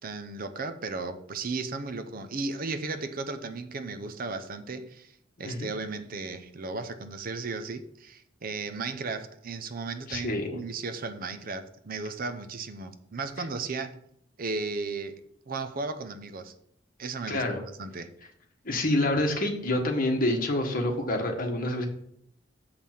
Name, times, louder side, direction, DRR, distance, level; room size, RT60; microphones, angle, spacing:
voice 1, 0.0-5.1 5.4-14.0 14.4-15.2 15.5-16.5 17.0-18.1, right 3 dB, 50° right, 10 dB, 0.7 m, -35 dB
voice 2, 5.4-5.7 10.1-10.6 17.3-17.6 18.6-21.9, left 1 dB, 50° left, 3 dB, 1.4 m, -27 dB
6.8 x 5.6 x 5.9 m, 0.70 s
head